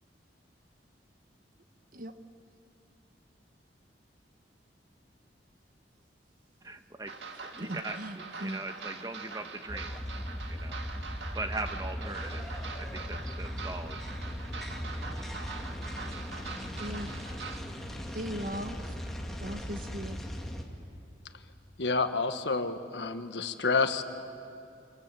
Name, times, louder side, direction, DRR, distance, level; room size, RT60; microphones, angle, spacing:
voice 1, 6.6-7.1 7.5-8.0 8.4-10.0 10.5-10.8 11.3-12.5 12.8-14.1, right 2 dB, 20° right, 7 dB, 1.2 m, -40 dB
sound 1, 7.1-17.6, right 4 dB, 85° right, 1.9 m, -44 dB
voice 2, 7.6-8.6 16.8-17.1 18.1-19.0 19.4-20.2, equal, 50° right, 8 dB, 1.3 m, -38 dB
sound 2, 9.7-20.6, equal, ahead, 2.2 m, -38 dB
voice 3, 21.8-24.0, left 4 dB, 80° left, 8 dB, 1.4 m, -29 dB
27.5 x 26.5 x 7.6 m, 2.6 s
head